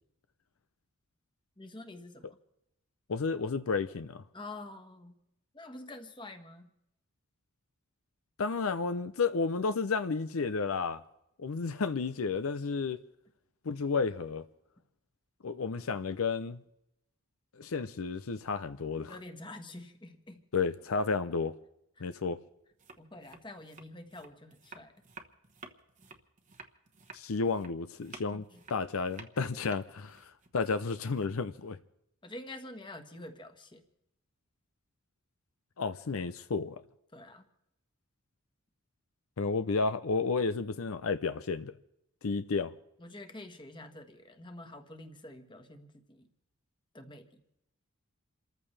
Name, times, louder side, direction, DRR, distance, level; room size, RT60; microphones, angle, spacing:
voice 1, 1.6-2.4 4.3-5.1 5.5-6.7 19.1-20.4 23.0-24.9 28.3-28.6 32.2-33.8 37.1-37.5 43.0-46.3 46.9-47.4, left 2 dB, 20° left, 1.4 m, -47 dB
voice 2, 3.1-4.2 8.4-11.0 11.4-13.0 13.6-14.4 15.4-16.6 17.5-19.1 20.5-21.5 22.0-22.4 27.1-28.4 28.7-31.8 35.8-36.8 39.4-41.8 42.2-42.7, left 4 dB, 75° left, 0.6 m, -32 dB
sound 1, 22.7-31.6, right 4 dB, 35° right, 1.1 m, -53 dB
28.5 x 14.0 x 3.3 m
head